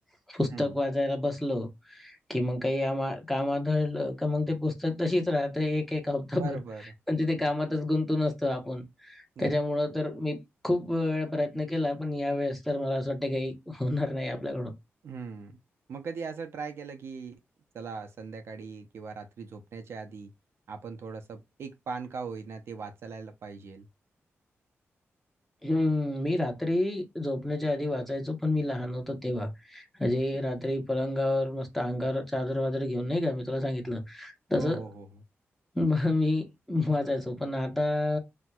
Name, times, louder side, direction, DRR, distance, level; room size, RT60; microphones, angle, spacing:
voice 1, 0.3-6.6 7.1-14.7 25.6-34.8 35.7-38.2, left 2 dB, 5° left, 0.7 m, -29 dB
voice 2, 6.3-6.8 9.4-9.5 15.0-15.6 15.9-17.4 17.7-20.3 20.7-23.9 34.6-35.1, right 5 dB, 65° right, 0.5 m, -39 dB
4.2 x 2.2 x 2.2 m
wide cardioid pair, 165°, 5 cm